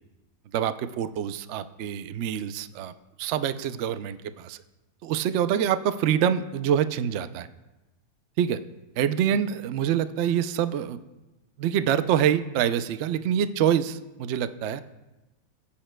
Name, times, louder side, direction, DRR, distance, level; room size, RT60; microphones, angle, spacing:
voice 1, 0.5-2.9 3.2-4.6 5.0-7.5 8.4-8.6 9.0-11.0 11.6-14.8, right 9 dB, 80° right, 11 dB, 0.6 m, -26 dB
19.0 x 8.7 x 2.2 m, 1.0 s
omnidirectional pair, 1.7 m